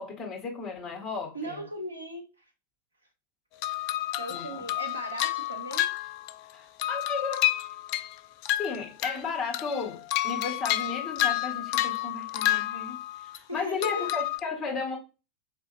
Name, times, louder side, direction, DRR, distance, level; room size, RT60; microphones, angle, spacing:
voice 1, 0.0-1.6 4.3-4.7 6.5-7.5 8.6-15.0, left 4 dB, 20° left, 1.6 m, -34 dB
voice 2, 1.3-2.5 4.2-5.9 13.5-14.1, right 1 dB, 80° right, 1.0 m, -37 dB
sound 1, 3.6-6.5 6.8-9.2 9.5-13.4 13.8-14.4, left 14 dB, 45° left, 0.3 m, -30 dB
4.3 x 3.3 x 2.6 m
figure-of-eight pair, 90°, 0 cm